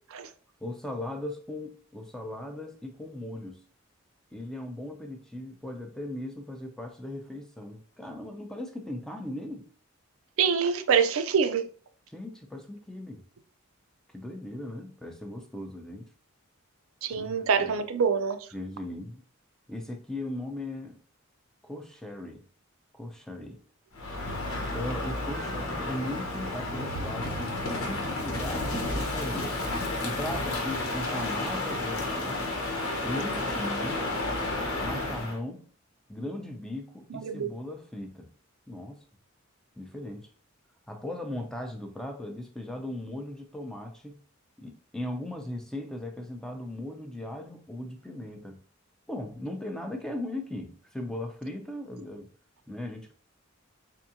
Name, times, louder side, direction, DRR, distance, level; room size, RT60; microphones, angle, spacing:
voice 1, 0.6-3.6 4.3-9.7 12.1-13.2 14.1-16.1 17.1-17.8 18.5-19.2 19.7-21.0 21.6-22.4 22.9-23.6 24.7-29.6 30.0-32.4 33.0-34.0 34.8-35.7 36.1-38.3 38.7-39.0 39.8-40.3 40.9-44.2 44.6-48.6 49.1-52.3 52.7-53.1, left 1 dB, 5° left, 0.4 m, -38 dB
voice 2, 10.4-11.7 17.0-18.4 37.1-37.5, right 6 dB, 80° right, 0.4 m, -25 dB
Crow, 23.9-35.4, left 2 dB, 85° left, 1.1 m, -31 dB
3.6 x 3.5 x 2.7 m
head